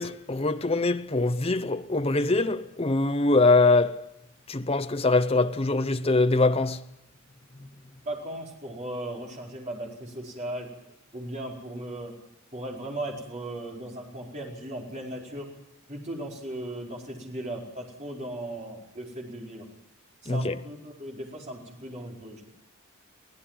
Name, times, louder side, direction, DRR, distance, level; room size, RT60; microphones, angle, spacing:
voice 1, 0.0-4.1 4.5-6.8 20.3-20.5, left 3 dB, 25° left, 0.8 m, -23 dB
voice 2, 8.0-10.7 11.1-12.2 12.5-15.5 15.9-19.7 20.2-22.5, right 1 dB, 30° right, 4.7 m, -37 dB
24.0 x 16.0 x 7.5 m
head